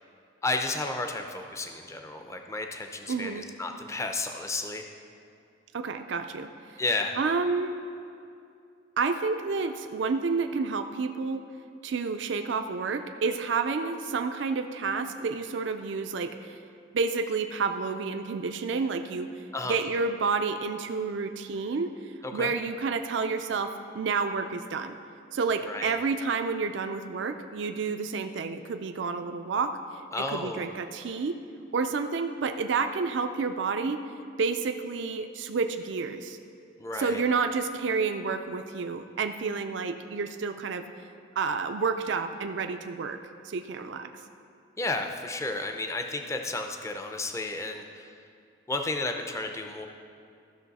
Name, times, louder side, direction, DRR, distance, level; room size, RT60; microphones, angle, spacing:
voice 1, 0.4-4.8 6.8-7.2 19.5-19.7 22.2-22.5 25.6-26.0 30.1-30.6 36.8-37.2 44.8-48.1 48.7-49.9, left 2 dB, 15° left, 4 dB, 0.5 m, -32 dB
voice 2, 3.1-3.5 5.7-6.8 7.2-7.8 9.0-11.4 11.8-16.6 16.9-25.0 25.3-29.8 30.1-31.4 31.7-34.0 34.4-36.4 36.9-40.9 41.4-43.2 43.4-44.1, right 4 dB, 60° right, 7 dB, 0.4 m, -30 dB
14.5 x 6.3 x 4.1 m, 2.5 s
head